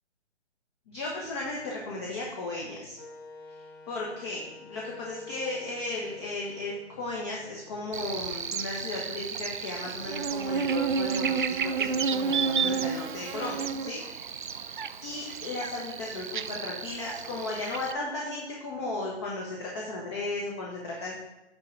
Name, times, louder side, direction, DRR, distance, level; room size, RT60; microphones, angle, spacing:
voice 1, 0.9-3.0 3.9-21.2, left 2 dB, 25° left, -2 dB, 1.1 m, -35 dB
Wind instrument woodwind instrument, 3.0-8.8, left 4 dB, 45° left, 3.4 m, -48 dB
Buzz, 7.9-17.9, right 6 dB, 50° right, 0.4 m, -31 dB
9.4 x 3.8 x 6.9 m, 1.0 s
hypercardioid pair, 150°, 34 cm